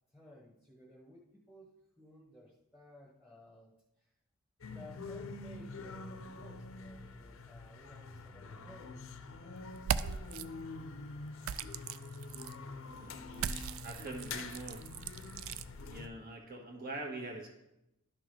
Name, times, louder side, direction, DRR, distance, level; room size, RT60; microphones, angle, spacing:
voice 1, 0.1-4.1 4.7-9.1, left 1 dB, 5° right, -4 dB, 1.2 m, -56 dB
sound 1, 4.6-16.1, left 3 dB, 65° left, 0.6 m, -46 dB
sound 2, 9.8-10.4 11.4-12.5 13.3-15.7, right 8 dB, 65° right, 0.3 m, -38 dB
voice 2, 12.8-13.5 13.8-14.8 15.8-17.5, right 2 dB, 45° right, 1 dB, 1.5 m, -44 dB
11.5 x 6.0 x 3.3 m, 0.88 s
head